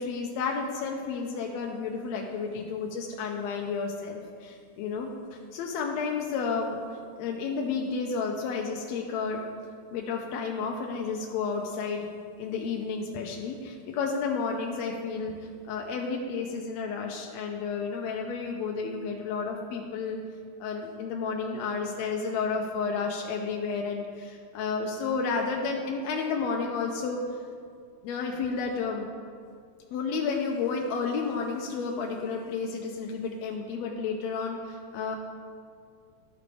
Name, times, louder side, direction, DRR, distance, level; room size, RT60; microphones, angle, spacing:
voice 1, 0.0-6.8 7.2-9.4 9.9-12.1 12.4-20.2 20.6-27.2 28.0-29.1 29.9-35.2, left 5 dB, 80° left, 1 dB, 1.6 m, -31 dB
13.5 x 5.0 x 3.3 m, 2.2 s
omnidirectional pair, 3.5 m